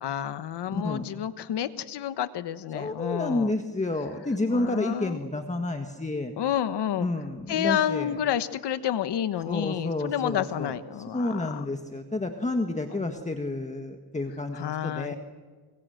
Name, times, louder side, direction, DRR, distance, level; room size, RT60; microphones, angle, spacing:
voice 1, 0.0-3.5 4.5-5.2 6.4-7.1 7.5-11.6 14.5-15.2, left 10 dB, 90° left, 12 dB, 1.2 m, -29 dB
voice 2, 0.7-1.0 2.7-6.3 7.0-8.2 9.5-10.8 11.1-15.2, left 2 dB, 15° left, 4 dB, 1.6 m, -30 dB
25.5 x 23.0 x 7.9 m, 1.5 s
cardioid pair, 110°, 40 cm